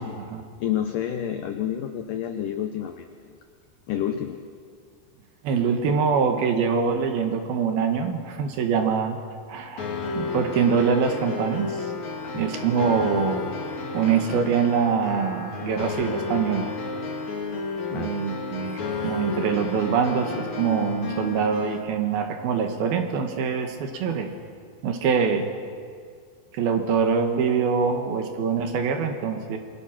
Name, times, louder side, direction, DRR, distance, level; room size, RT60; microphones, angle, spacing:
voice 1, 0.6-3.3 3.9-4.4 12.2-12.5 17.9-18.1, left 10 dB, 80° left, 6 dB, 1.9 m, -29 dB
voice 2, 5.4-9.2 9.5-9.9 10.1-11.9 12.3-13.5 13.9-16.7 17.9-24.3 24.8-25.5 26.5-29.6, right 6 dB, 65° right, 5 dB, 3.1 m, -24 dB
sound 1, 9.8-21.8, left 4 dB, 45° left, 3.3 m, -32 dB
27.5 x 22.5 x 6.0 m, 2.1 s
omnidirectional pair, 5.1 m